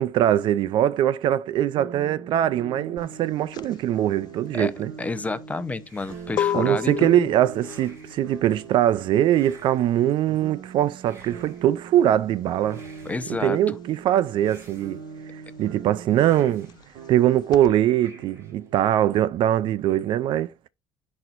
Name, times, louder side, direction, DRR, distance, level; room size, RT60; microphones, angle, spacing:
voice 1, 0.0-4.9 6.5-12.8 13.4-15.0 15.6-16.7 17.1-20.5, right 12 dB, 60° right, 0.4 m, -22 dB
sound 1, 1.8-19.6, right 6 dB, 85° right, 1.6 m, -43 dB
sound 2, 3.0-13.2 13.5-17.7, left 11 dB, 50° left, 0.4 m, -34 dB
voice 2, 5.0-7.3 13.0-13.6, left 3 dB, 15° left, 0.7 m, -30 dB
sound 3, 5.8-6.6 7.5-8.3 9.3-10.1 11.0-11.8 12.6-13.5 14.4-15.3 16.2-16.9 18.0-18.7, right 2 dB, 30° right, 2.9 m, -52 dB
11.0 x 4.3 x 2.6 m
cardioid pair, 105°, 9 cm